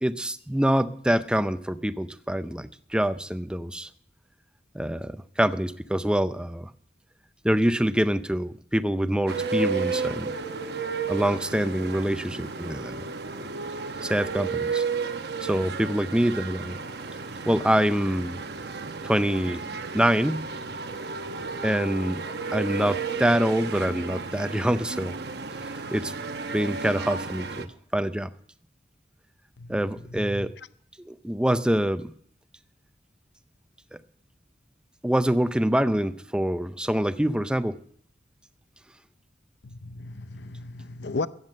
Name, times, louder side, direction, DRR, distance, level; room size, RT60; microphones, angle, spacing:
voice 1, 0.0-3.9 4.7-6.7 7.4-10.3 11.1-13.1 14.0-14.8 15.4-16.8 17.5-18.4 19.0-19.6 19.9-20.5 21.6-22.3 22.5-25.2 25.6-26.1 26.5-28.3 29.7-30.5 31.0-32.1 33.9-34.0 35.0-37.8, right 1 dB, 5° right, 0.5 m, -25 dB
sound 1, 9.3-27.7, right 4 dB, 65° right, 0.9 m, -33 dB
voice 2, 29.6-30.7 39.6-41.3, left 3 dB, 75° left, 0.7 m, -36 dB
15.0 x 9.6 x 6.6 m
head